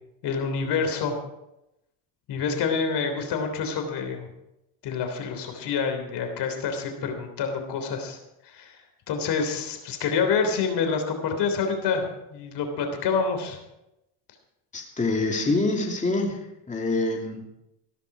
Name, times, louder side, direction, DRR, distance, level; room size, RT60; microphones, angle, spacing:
voice 1, 0.2-1.2 2.3-4.3 4.8-8.2 8.4-8.7 9.1-13.6, left 5 dB, 55° left, 5 dB, 3.4 m, -27 dB
voice 2, 14.7-16.4 16.7-17.4, left 2 dB, 15° left, 0 dB, 2.8 m, -25 dB
15.0 x 12.5 x 4.9 m, 0.88 s
supercardioid pair, 100°, 47 cm